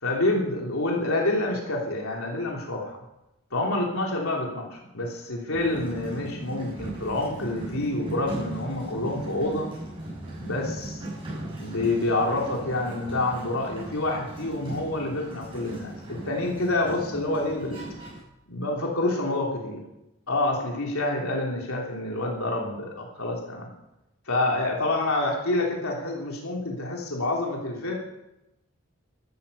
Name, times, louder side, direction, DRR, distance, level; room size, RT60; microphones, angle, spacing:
voice 1, 0.0-3.0 3.5-9.7 10.4-11.1 11.6-17.9 18.5-19.8 20.3-23.7 24.3-27.9, left 2 dB, 85° left, -1 dB, 3.3 m, -27 dB
Sliding door, 5.5-18.2, right 1 dB, 25° right, 7.4 m, -38 dB
13.5 x 12.5 x 7.0 m, 0.90 s
head